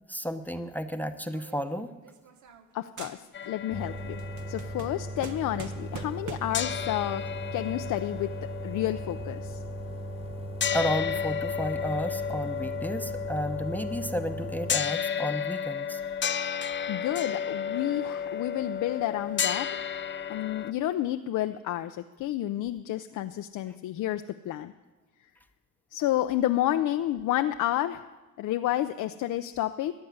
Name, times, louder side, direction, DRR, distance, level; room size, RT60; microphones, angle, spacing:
voice 1, 0.1-1.9 10.7-16.0, equal, 5° left, 9 dB, 0.9 m, -32 dB
sound 1, 1.3-2.7 3.0-3.6 4.0-6.7, right 6 dB, 75° right, 1.4 m, -45 dB
voice 2, 2.7-3.2 3.5-4.2 4.5-7.2 7.5-8.3 8.6-9.6 16.9-24.7 25.9-28.0 28.4-29.9, left 13 dB, 80° left, 8 dB, 0.6 m, -30 dB
sound 2, 3.3-6.3 6.5-20.7, left 8 dB, 40° left, 0.6 m, -33 dB
sound 3, 3.7-14.7, right 1 dB, 20° right, 1.6 m, -38 dB
14.5 x 9.6 x 9.5 m, 1.2 s
cardioid pair, 90°, 30 cm